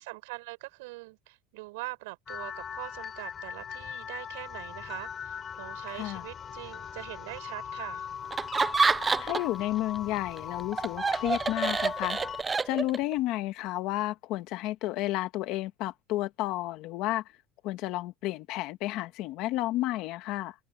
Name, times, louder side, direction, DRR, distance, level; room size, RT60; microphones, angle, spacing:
voice 1, 0.0-8.1, right 24 dB, 85° right, 6.8 m, -42 dB
sound 1, 2.3-12.4, left 7 dB, 25° left, 7.6 m, -40 dB
voice 2, 5.9-6.2 9.2-12.2 12.6-17.2 17.6-20.5, left 16 dB, 50° left, 1.3 m, -31 dB
Laughter, 8.3-9.6 9.9-13.1, right 4 dB, 15° right, 0.4 m, -27 dB
cardioid pair, 170°, 0 cm